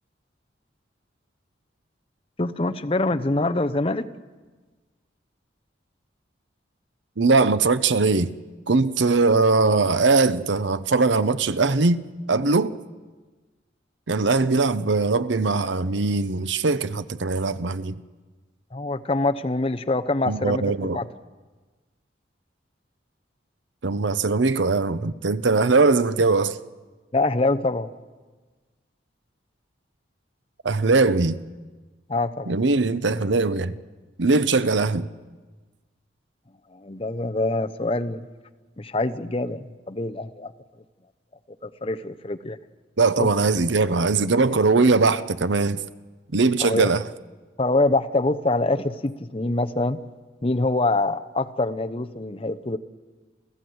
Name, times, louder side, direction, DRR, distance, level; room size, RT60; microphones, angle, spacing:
voice 1, 2.4-4.1 18.7-21.1 27.1-27.9 32.1-32.5 36.7-38.3 38.8-40.5 41.6-42.6 43.2-43.3 46.6-46.9 47.6-50.0 50.4-52.8, left 2 dB, 30° left, 0.8 m, -25 dB
voice 2, 7.2-8.3 8.7-12.0 12.3-12.8 14.1-18.0 20.3-21.0 23.8-26.6 30.6-31.4 32.5-33.7 34.2-35.1 43.0-45.8 46.3-47.0, right 3 dB, 75° right, 0.8 m, -21 dB
29.0 x 15.0 x 7.9 m
head